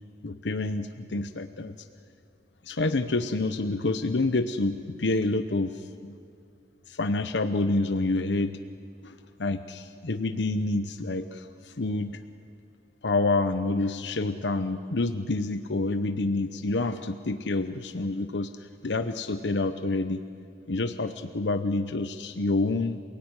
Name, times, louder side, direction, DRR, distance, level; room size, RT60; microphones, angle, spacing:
voice 1, 0.2-1.7 2.6-6.1 6.9-8.6 9.0-12.2 13.0-18.5 18.8-20.2 20.7-23.0, left 2 dB, 80° left, 10 dB, 0.9 m, -28 dB
27.5 x 18.0 x 9.7 m, 2.3 s
head